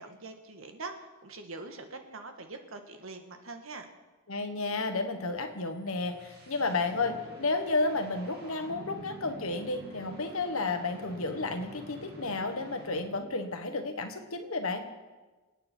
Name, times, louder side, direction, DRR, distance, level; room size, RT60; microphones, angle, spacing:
voice 1, 0.0-3.9, right 3 dB, 70° right, 5 dB, 1.7 m, -43 dB
voice 2, 4.3-14.8, left 3 dB, 75° left, 6 dB, 1.5 m, -32 dB
sound 1, 5.7-13.4, right 1 dB, 50° right, 2.7 m, -48 dB
26.5 x 8.9 x 4.5 m, 1.3 s
head